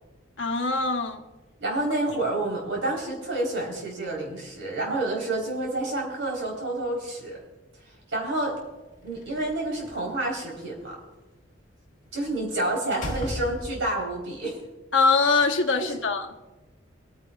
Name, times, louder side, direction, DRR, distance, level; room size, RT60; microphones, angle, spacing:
voice 1, 0.4-1.2 14.9-16.3, left 4 dB, 80° left, 1.1 m, -23 dB
voice 2, 1.6-7.4 8.1-8.6 9.0-11.0 12.1-14.6 15.8-16.0, right 2 dB, 80° right, 4.0 m, -29 dB
Slam, 9.1-10.1 12.2-12.5 12.9-14.1, left 1 dB, 40° left, 1.8 m, -36 dB
23.0 x 9.7 x 2.4 m
head